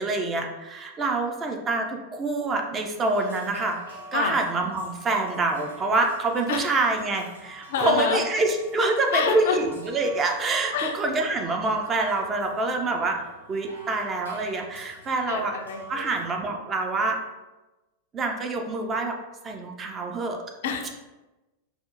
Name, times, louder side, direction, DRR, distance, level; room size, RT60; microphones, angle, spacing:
voice 1, 0.0-3.8 4.1-13.2 13.5-15.6 15.9-17.2 18.1-19.2 19.4-20.4, right 2 dB, 25° right, 3 dB, 0.4 m, -26 dB
sound 1, 3.0-16.3, right 1 dB, 75° right, 0.5 m, -45 dB
voice 2, 7.7-8.2 9.1-9.6 10.7-10.9 15.3-16.2 20.6-20.9, left 6 dB, 55° left, 4 dB, 0.3 m, -27 dB
4.2 x 2.1 x 2.4 m, 1.1 s
figure-of-eight pair, 90°, 0 cm